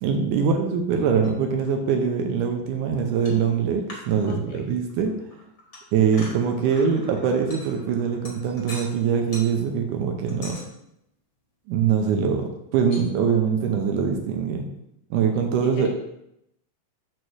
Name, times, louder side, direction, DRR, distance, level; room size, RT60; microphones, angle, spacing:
voice 1, 0.0-5.2 5.9-10.6 11.7-14.6 15.1-15.9, right 6 dB, 80° right, 4 dB, 2.0 m, -23 dB
sound 1, 1.1-1.4 1.7-1.8 3.1-3.5 3.9-4.6 4.9-9.0 9.3-9.5 10.3-10.7 12.9-13.0, left 1 dB, 55° left, 0.8 m, -42 dB
voice 2, 4.3-4.6 15.6-15.9, left 8 dB, 80° left, 2 dB, 2.0 m, -40 dB
5.4 x 4.7 x 6.3 m, 0.81 s
omnidirectional pair, 4.2 m